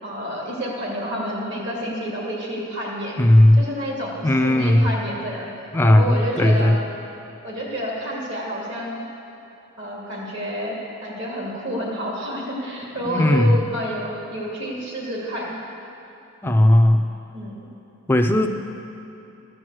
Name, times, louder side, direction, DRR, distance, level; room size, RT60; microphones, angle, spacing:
voice 1, 0.0-3.2 3.6-5.5 5.8-6.8 7.4-9.0 9.8-15.6 17.3-17.7, equal, 55° right, -3 dB, 2.5 m, -29 dB
voice 2, 3.2-3.6 4.2-4.9 5.7-6.8 13.0-13.6 16.4-17.1 18.1-18.5, left 1 dB, 10° left, 4 dB, 0.5 m, -16 dB
12.5 x 6.2 x 7.8 m, 2.9 s
head